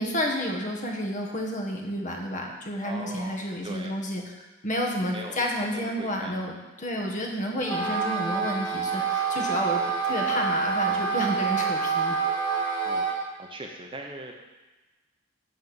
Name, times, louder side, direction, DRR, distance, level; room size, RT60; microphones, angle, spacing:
voice 1, 0.0-4.2 4.6-12.2, equal, 40° left, 1 dB, 1.5 m, -30 dB
voice 2, 2.8-4.0 5.1-6.4 12.8-13.0 13.4-14.3, right 2 dB, 25° right, 2 dB, 1.0 m, -40 dB
Wind instrument woodwind instrument, 7.6-13.2, right 5 dB, 20° left, 1.5 m, -27 dB
11.0 x 4.3 x 7.9 m, 1.2 s
head